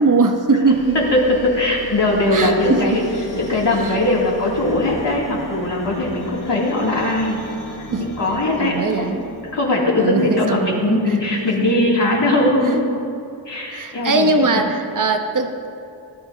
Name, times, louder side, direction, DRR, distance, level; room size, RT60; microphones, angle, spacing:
voice 1, 0.0-1.0 2.3-3.0 3.7-4.0 7.9-8.1 8.6-9.2 10.0-11.1 11.8-11.9 12.7-12.8 13.7-15.7, right 3 dB, 45° right, 5 dB, 1.0 m, -20 dB
sound 1, 0.7-10.1, equal, 45° left, 2.1 m, -37 dB
voice 2, 0.9-3.0 3.3-7.4 7.7-9.1 9.5-12.8 13.5-14.6, left 1 dB, 65° left, -5 dB, 2.7 m, -20 dB
18.5 x 11.5 x 2.8 m, 2.6 s
wide cardioid pair, 80°, 46 cm